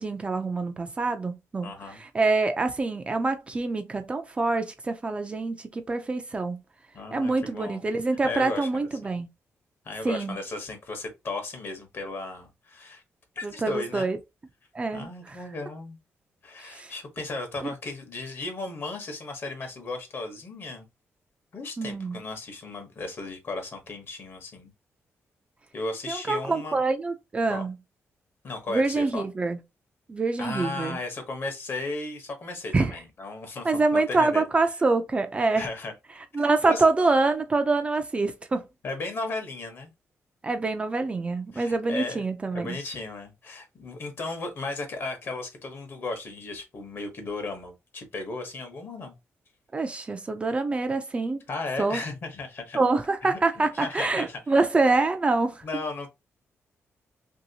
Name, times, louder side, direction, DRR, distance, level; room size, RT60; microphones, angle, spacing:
voice 1, 0.0-6.6 7.1-9.3 10.0-10.4 13.4-14.2 14.7-15.4 16.6-16.9 17.6-17.7 21.8-22.2 26.1-27.7 28.7-29.6 30.1-31.0 32.7-32.9 33.6-35.7 36.3-38.6 40.4-42.7 49.7-51.4 51.8-52.0 52.7-55.6, right 3 dB, 25° right, 0.3 m, -26 dB
voice 2, 1.6-2.0 6.9-7.8 8.2-8.7 9.8-13.0 13.4-14.1 14.9-16.0 16.4-20.8 21.5-24.7 25.7-26.8 27.5-27.7 28.4-29.3 30.4-34.4 35.5-35.9 36.4-36.8 38.8-39.9 41.5-42.2 42.5-49.1 51.5-52.8 53.2-53.4 53.7-54.4 55.6-56.1, left 3 dB, 45° left, 0.9 m, -35 dB
2.9 x 2.7 x 2.7 m
wide cardioid pair, 145°, 5 cm